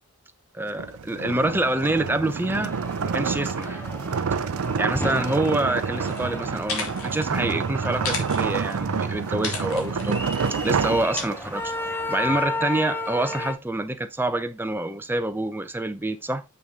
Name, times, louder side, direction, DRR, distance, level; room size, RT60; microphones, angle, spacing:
voice 1, 0.5-2.7 3.0-3.8 4.8-10.3 10.6-11.7 12.1-16.4, right 2 dB, 10° right, 0.7 m, -26 dB
sound 1, 0.7-11.7, right 5 dB, 80° right, 0.5 m, -28 dB
sound 2, 2.5-13.5, left 2 dB, 10° left, 1.0 m, -34 dB
sound 3, 6.1-6.2 6.5-7.3 8.0-8.8 9.4-10.2 11.2-11.3, left 4 dB, 75° left, 2.2 m, -32 dB
6.7 x 5.9 x 3.4 m
head